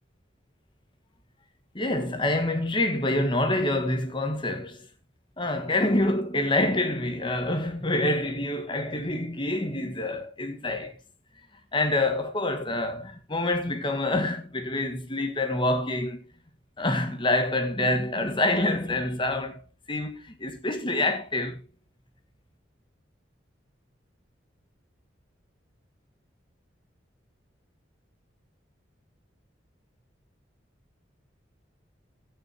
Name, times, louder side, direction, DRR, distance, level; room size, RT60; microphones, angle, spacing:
voice 1, 1.7-4.9 5.4-10.9 11.7-16.2 16.8-19.6 19.9-21.6, left 2 dB, 25° left, 1.6 m, -26 dB
14.0 x 9.4 x 2.9 m
head